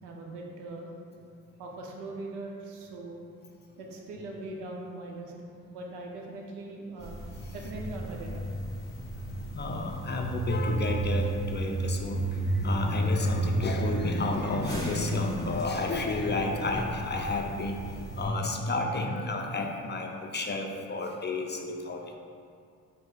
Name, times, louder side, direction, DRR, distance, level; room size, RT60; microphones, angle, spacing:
voice 1, 0.0-0.9 1.6-3.2 3.8-7.1 7.5-8.5, right 2 dB, 75° right, 0 dB, 0.7 m, -41 dB
sound 1, 7.0-18.3, right 2 dB, 10° left, 1.3 m, -33 dB
voice 2, 9.5-22.2, left 2 dB, 25° left, 2 dB, 0.4 m, -31 dB
4.9 x 2.1 x 3.9 m, 2.3 s
hypercardioid pair, 40°, 42 cm